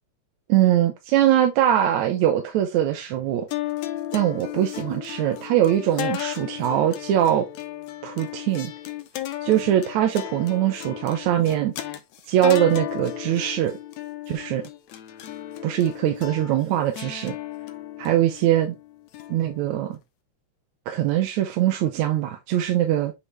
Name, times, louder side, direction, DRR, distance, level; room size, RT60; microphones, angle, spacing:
voice 1, 0.5-3.5 4.1-7.5 8.0-8.7 9.4-11.7 12.3-13.8 14.3-14.6 15.6-17.4 18.0-18.7 19.3-20.0 20.9-23.1, right 12 dB, 80° right, 2.2 m, -22 dB
sound 1, 3.5-20.0, left 13 dB, 75° left, 2.0 m, -35 dB
8.1 x 3.7 x 3.3 m
omnidirectional pair, 3.4 m